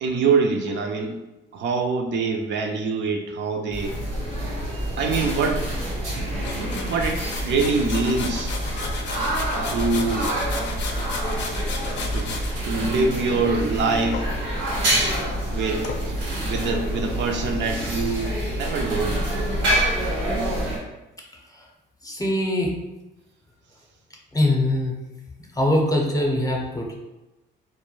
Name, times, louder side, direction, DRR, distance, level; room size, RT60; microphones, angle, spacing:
voice 1, 0.0-1.2 1.5-4.0 5.0-5.7 6.9-8.6 9.7-10.3 12.1-12.3 12.6-14.3 15.5-15.9 16.4-19.5, right 4 dB, 65° right, 3 dB, 0.4 m, -24 dB
sound 1, 3.7-20.8, right 1 dB, 90° right, 1.0 m, -27 dB
sound 2, 6.4-12.6 14.1-14.7 15.1-15.2 15.8-16.0, left 4 dB, 65° left, 0.5 m, -34 dB
voice 2, 22.0-22.7 24.3-25.0 25.6-26.9, left 1 dB, 15° left, 0 dB, 0.6 m, -22 dB
2.2 x 2.1 x 3.0 m, 1.0 s
cardioid pair, 90°, 20 cm